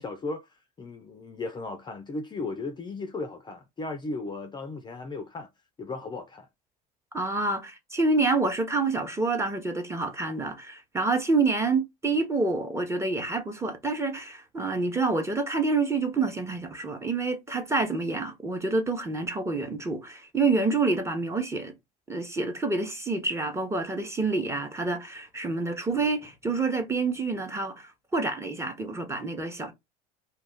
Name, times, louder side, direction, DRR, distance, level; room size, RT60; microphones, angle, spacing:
voice 1, 0.0-5.5 5.8-6.5, left 3 dB, 20° left, 0.4 m, -36 dB
voice 2, 7.1-21.7 22.1-29.7, right 3 dB, 15° right, 0.8 m, -27 dB
2.3 x 2.2 x 3.5 m
hypercardioid pair, 85°, 21 cm